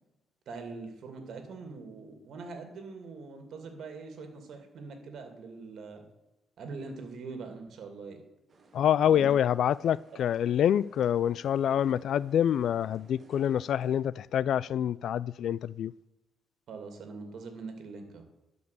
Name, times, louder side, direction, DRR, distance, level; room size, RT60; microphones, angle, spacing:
voice 1, 0.5-6.1 6.6-8.2 9.0-9.3 10.1-10.2 11.7-11.8 16.7-18.2, right 4 dB, 65° right, 2.5 m, -43 dB
sound 1, 8.5-14.0, right 3 dB, 35° right, 2.0 m, -59 dB
voice 2, 8.7-15.9, left 9 dB, 70° left, 0.3 m, -26 dB
12.0 x 5.4 x 8.2 m
cardioid pair, 115°, 0 cm